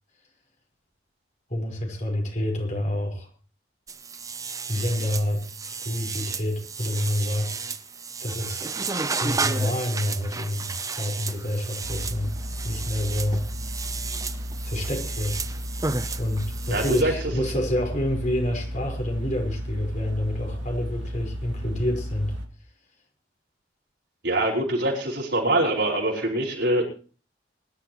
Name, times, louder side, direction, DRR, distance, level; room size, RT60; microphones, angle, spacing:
voice 1, 1.5-3.3 4.7-7.5 8.2-8.7 9.1-12.3 12.6-13.4 14.6-15.4 16.2-22.4, left 1 dB, 40° left, 1 dB, 5.0 m, -28 dB
sound 1, 3.9-17.0, right 4 dB, 20° right, 0.7 m, -33 dB
sound 2, 11.8-22.5, equal, 90° right, 1.9 m, -34 dB
voice 2, 16.7-17.1 24.2-26.8, right 1 dB, 70° right, -2 dB, 5.4 m, -24 dB
23.5 x 12.0 x 3.1 m, 0.39 s
head